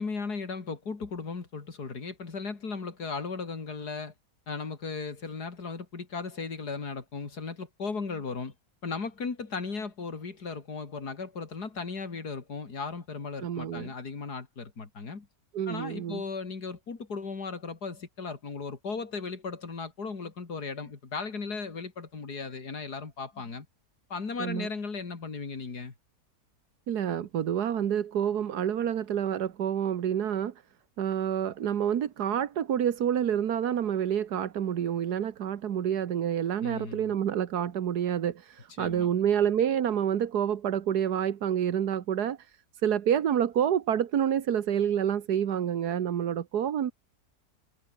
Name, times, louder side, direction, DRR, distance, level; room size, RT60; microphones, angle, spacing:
voice 1, 0.0-4.1 4.5-8.5 8.8-15.3 15.7-23.7 24.1-25.9 36.6-37.2 38.8-39.1, left 4 dB, 90° left, 3.4 m, -36 dB
voice 2, 13.4-13.9 15.5-16.2 24.4-24.7 26.9-30.5 31.0-46.9, right 9 dB, 90° right, 1.7 m, -28 dB
omnidirectional pair, 1.6 m